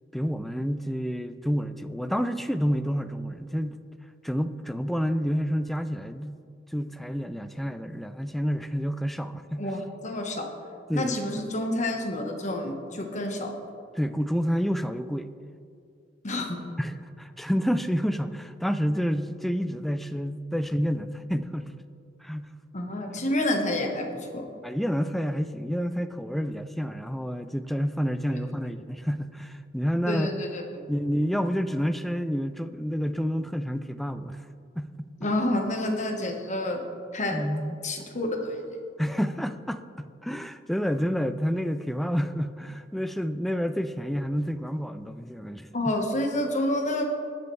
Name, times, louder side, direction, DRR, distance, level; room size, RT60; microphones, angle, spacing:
voice 1, 0.1-3.8 4.2-6.4 6.7-9.7 10.9-11.2 14.0-15.3 16.8-21.8 22.2-22.6 24.6-30.3 30.9-34.4 34.8-35.2 37.3-37.7 39.0-45.9, equal, ahead, 10 dB, 0.3 m, -29 dB
voice 2, 9.6-10.5 10.9-13.6 16.2-16.6 22.7-24.5 28.3-28.4 30.1-30.8 35.2-36.8 37.1-37.4 37.8-38.7 45.7-47.1, left 1 dB, 40° left, 3 dB, 1.2 m, -29 dB
20.5 x 6.8 x 3.2 m, 2.5 s
head